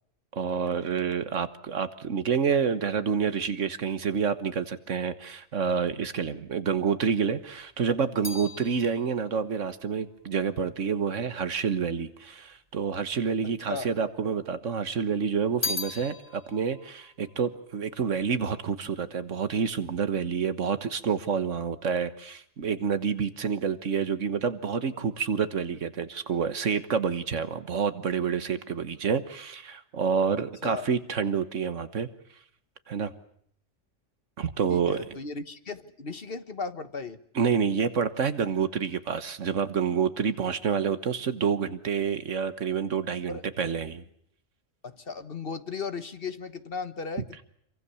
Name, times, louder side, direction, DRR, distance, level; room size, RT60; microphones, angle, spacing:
voice 1, 0.3-32.1 32.9-33.1 34.4-35.0 37.3-44.0, right 6 dB, 70° right, 12 dB, 1.6 m, -28 dB
sound 1, 7.3-11.7 12.5-13.3 13.6-14.7 15.0-18.6 18.8-19.4, left 3 dB, 30° left, 3.5 m, -39 dB
voice 2, 34.7-37.2 43.3-43.4 44.8-47.4, left 4 dB, 45° left, 10 dB, 1.5 m, -36 dB
26.5 x 24.0 x 7.1 m, 0.69 s
omnidirectional pair, 1.3 m